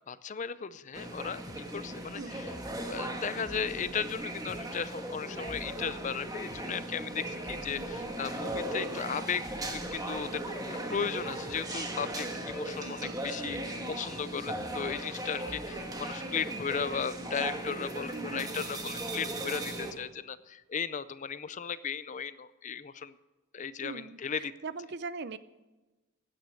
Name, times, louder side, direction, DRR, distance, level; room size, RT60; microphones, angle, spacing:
voice 1, 0.1-1.4 1.7-2.5 2.9-9.4 9.7-23.1 23.5-24.5, left 6 dB, 35° left, 16 dB, 0.4 m, -36 dB
sound 1, 0.9-19.9, right 1 dB, 15° right, 1.3 m, -38 dB
sound 2, 1.5-1.7 2.5-3.1 3.5-4.7 5.5-6.7 7.5-8.7 9.5-11.6 12.5-12.6 13.5-13.7 14.5-15.2 15.5-16.1 16.5-17.1, left 1 dB, 15° left, 0.8 m, -50 dB
voice 2, 2.1-2.4 12.8-13.2 18.1-18.5 23.8-25.4, right 4 dB, 50° right, 15 dB, 0.6 m, -41 dB
16.0 x 9.4 x 6.3 m, 1.2 s
head